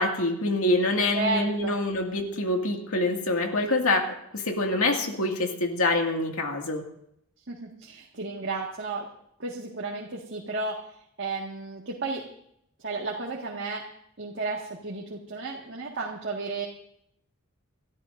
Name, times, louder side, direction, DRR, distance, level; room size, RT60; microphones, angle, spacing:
voice 1, 0.0-4.1 4.3-6.8, left 2 dB, 80° left, 2 dB, 2.2 m, -25 dB
voice 2, 1.1-1.7 7.5-9.1 9.4-10.9 11.2-12.2 12.8-13.9 14.2-16.7, right 3 dB, 55° right, -2 dB, 1.8 m, -33 dB
29.0 x 13.0 x 2.6 m, 0.74 s
head